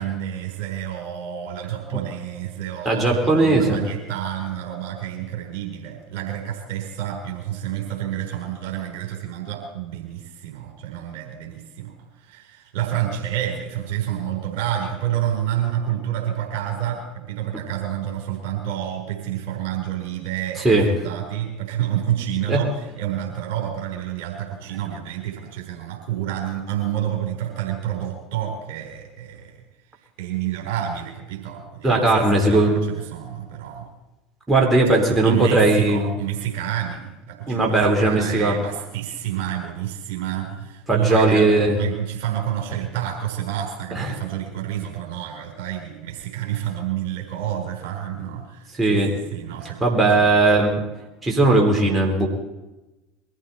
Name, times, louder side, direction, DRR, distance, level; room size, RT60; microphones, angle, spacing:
voice 1, 0.0-29.6 30.2-33.9 35.2-50.7, right 11 dB, 65° right, 1 dB, 3.9 m, -29 dB
voice 2, 2.9-3.8 20.6-20.9 22.5-22.6 31.8-32.8 34.5-36.1 37.5-38.6 40.9-41.8 44.0-44.2 48.8-49.1 49.8-50.8 51.2-52.3, right 2 dB, 20° right, 0 dB, 4.1 m, -18 dB
22.0 x 14.5 x 4.3 m, 1.1 s
hypercardioid pair, 75°, 0 cm